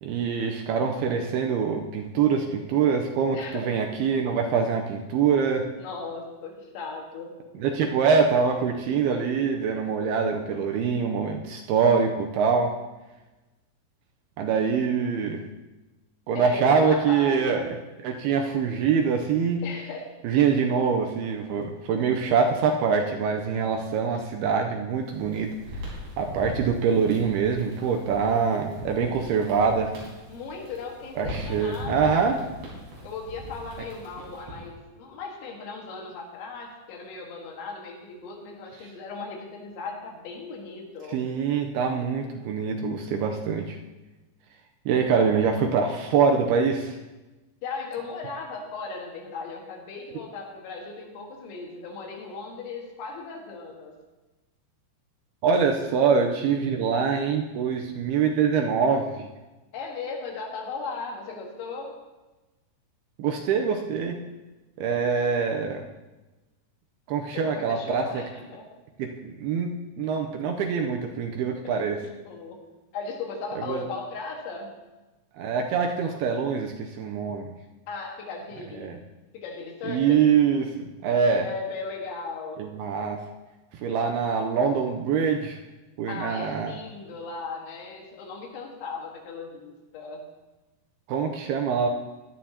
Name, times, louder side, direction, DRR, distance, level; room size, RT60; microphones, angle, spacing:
voice 1, 0.0-5.7 7.6-12.7 14.4-15.4 16.3-17.6 18.0-19.6 20.2-25.5 26.2-29.9 31.2-32.4 41.1-43.8 44.9-47.0 55.4-59.3 63.2-64.2 64.8-65.8 67.1-68.1 69.0-72.0 73.7-73.8 75.4-77.5 78.8-79.0 79.9-81.5 82.6-83.2 83.8-85.6 86.0-86.7 91.1-91.9, right 6 dB, 80° right, 3 dB, 2.4 m, -24 dB
voice 2, 3.3-3.8 5.8-7.9 16.3-17.7 19.6-20.2 30.3-32.3 33.0-41.2 47.6-53.9 59.7-62.0 67.3-68.7 71.6-72.6 72.9-74.7 77.9-79.0 79.3-80.2 81.4-82.6 86.1-90.2, left 4 dB, 90° left, 1 dB, 4.0 m, -37 dB
sound 1, 24.9-34.7, equal, 60° right, 5.7 m, -40 dB
16.5 x 11.5 x 2.9 m, 1.1 s
omnidirectional pair, 5.1 m